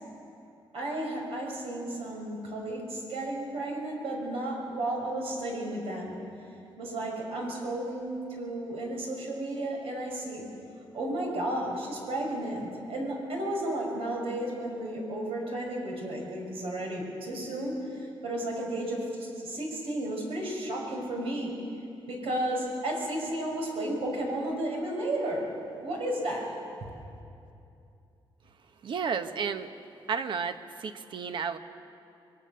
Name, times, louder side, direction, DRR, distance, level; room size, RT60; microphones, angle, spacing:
voice 1, 0.7-6.2 6.8-10.5 10.9-21.5 22.1-25.5 25.8-26.5, right 1 dB, 85° right, 0 dB, 6.2 m, -33 dB
voice 2, 28.8-29.8 30.1-31.6, right 6 dB, 60° right, 9 dB, 1.1 m, -32 dB
26.5 x 22.0 x 6.7 m, 2.7 s
wide cardioid pair, 140°, 9 cm